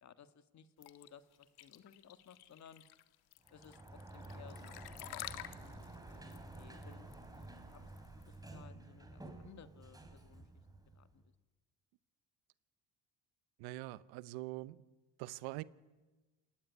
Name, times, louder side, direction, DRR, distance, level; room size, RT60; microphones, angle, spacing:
voice 1, 0.0-2.8 3.5-7.9 8.3-10.5 10.9-11.2, left 8 dB, 45° left, 1.7 m, -60 dB
sound 1, 0.8-8.5, left 15 dB, 75° left, 1.7 m, -50 dB
Sliding door, 3.4-11.2, right 2 dB, 10° right, 3.6 m, -51 dB
voice 2, 13.6-14.8 15.2-15.6, right 18 dB, 85° right, 1.0 m, -44 dB
28.5 x 17.0 x 9.9 m
cardioid pair, 100°, 38 cm